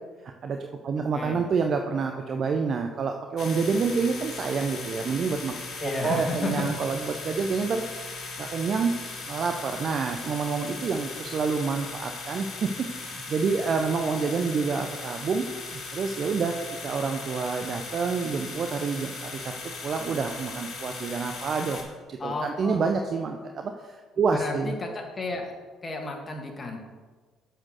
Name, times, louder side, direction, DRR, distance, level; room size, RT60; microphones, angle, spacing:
voice 1, 0.2-0.6 0.8-5.5 5.8-7.8 8.4-8.9 9.3-15.5 15.7-16.5 16.8-19.5 19.8-21.8 22.1-24.7, right 5 dB, 50° right, 4 dB, 0.6 m, -28 dB
sound 1, 3.4-21.8, left 3 dB, 55° left, 1.6 m, -38 dB
voice 2, 5.8-6.5 22.2-22.8 24.3-25.5 25.8-26.8, left 2 dB, 30° left, 2 dB, 1.7 m, -32 dB
7.1 x 4.4 x 6.3 m, 1.4 s
hypercardioid pair, 55°, 0 cm